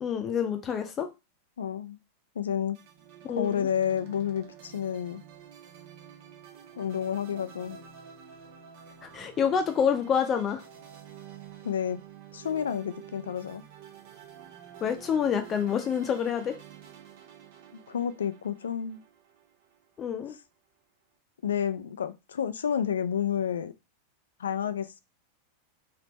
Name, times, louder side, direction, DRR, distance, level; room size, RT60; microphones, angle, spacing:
voice 1, 0.0-1.1 3.2-3.7 9.1-10.6 14.8-16.6 20.0-20.3, left 7 dB, 25° left, 7 dB, 0.6 m, -27 dB
voice 2, 1.6-2.0 2.4-2.8 3.3-5.2 6.8-7.8 11.6-12.0 12.3-13.6 17.7-19.0 21.4-23.7 24.4-25.0, left 8 dB, 65° left, 12 dB, 0.3 m, -30 dB
sound 1, 2.7-20.1, right 8 dB, 50° right, 0.7 m, -49 dB
3.4 x 2.9 x 2.9 m, 0.26 s
figure-of-eight pair, 90°, 0 cm